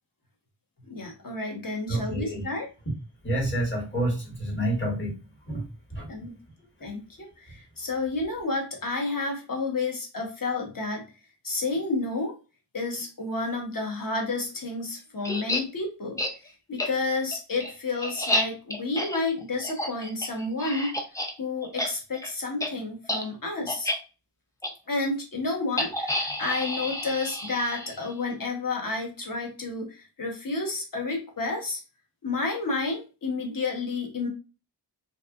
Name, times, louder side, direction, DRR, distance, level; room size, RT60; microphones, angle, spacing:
voice 1, 0.9-2.7 6.1-6.4 6.8-11.0 11.4-12.3 12.7-16.2 16.7-20.9 21.4-23.9 24.9-31.8 32.2-34.3, left 3 dB, 50° left, 1 dB, 0.9 m, -30 dB
voice 2, 1.9-2.4 3.2-5.1 5.5-5.6 5.9-6.1, right 1 dB, 25° left, -1 dB, 1.1 m, -28 dB
sound 1, 15.2-15.6 16.2-16.3 16.8-16.9 17.3-21.3 21.6-21.9 22.1-22.3 22.6-22.7 23.0-23.2 23.7-24.0 24.6-24.7 25.8-28.1, left 1 dB, 10° left, 0.4 m, -30 dB
2.7 x 2.3 x 2.3 m, 0.32 s
wide cardioid pair, 65°, 42 cm